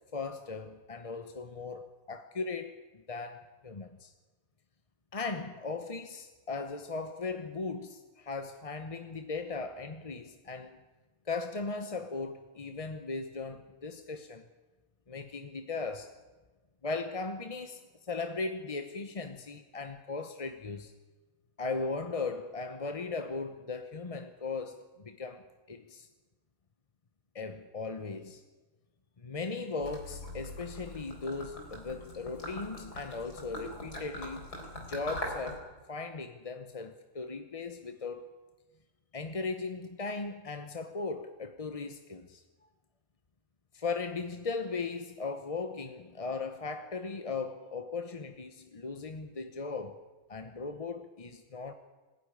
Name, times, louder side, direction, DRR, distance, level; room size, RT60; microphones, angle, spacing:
voice 1, 0.1-2.8 3.1-4.1 5.1-10.8 11.3-14.4 15.1-16.1 16.8-20.9 21.6-25.4 25.7-26.1 27.3-28.4 29.2-34.5 34.9-38.3 39.1-42.4 43.7-50.0 50.3-51.7, left 4 dB, 30° left, 8 dB, 0.8 m, -38 dB
Gurgling / Liquid, 29.8-35.6, equal, 85° left, 4.5 m, -42 dB
20.5 x 16.0 x 9.7 m, 1.3 s
omnidirectional pair, 1.6 m